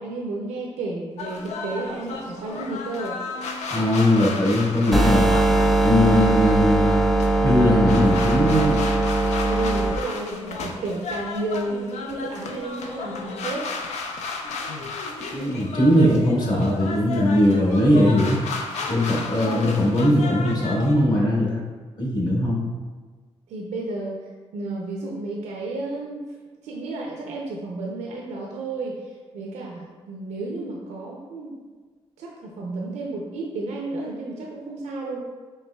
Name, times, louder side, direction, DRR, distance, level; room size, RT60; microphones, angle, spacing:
voice 1, 0.0-3.2 9.4-13.7 23.5-24.2 24.5-26.2 26.6-31.6 32.2-35.2, right 2 dB, 90° right, -1 dB, 0.5 m, -32 dB
sound 1, 1.2-20.9, left 4 dB, 80° left, 0.5 m, -33 dB
voice 2, 3.7-5.3 5.8-7.0 7.4-8.8 15.3-18.4 18.9-21.6 22.0-22.6, left 1 dB, 35° left, -3 dB, 1.3 m, -20 dB
sound 2, 4.9-9.9, right 2 dB, ahead, 0.4 m, -20 dB
5.4 x 3.3 x 2.2 m, 1.4 s
cardioid pair, 70°, 11 cm